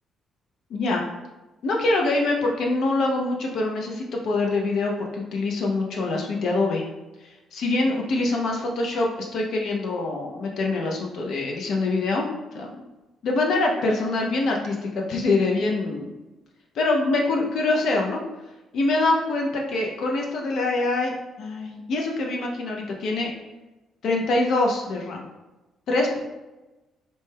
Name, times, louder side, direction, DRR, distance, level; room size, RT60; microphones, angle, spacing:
voice 1, 0.7-1.0 1.6-6.8 7.2-12.8 13.2-16.1 16.7-18.2 18.7-23.3 24.0-25.2 25.9-26.2, left 2 dB, 70° left, 0 dB, 0.5 m, -24 dB
4.1 x 2.2 x 3.3 m, 1.1 s
cardioid pair, 90°, 0 cm